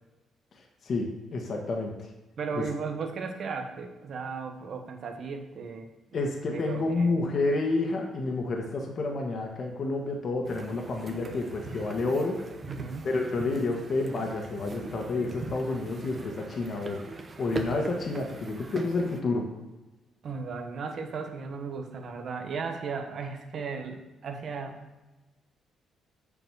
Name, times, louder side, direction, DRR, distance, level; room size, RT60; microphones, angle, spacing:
voice 1, 0.8-1.9 2.5-2.6 6.1-12.4 13.0-17.0 17.4-19.4, left 3 dB, 50° left, 1 dB, 1.4 m, -29 dB
voice 2, 2.4-6.2 6.5-7.1 12.7-13.1 20.2-24.8, right 5 dB, 60° right, 5 dB, 1.3 m, -36 dB
sound 1, 10.4-19.2, right 3 dB, 35° right, 1.1 m, -40 dB
7.4 x 5.0 x 6.3 m, 1.1 s
cardioid pair, 90°, 0 cm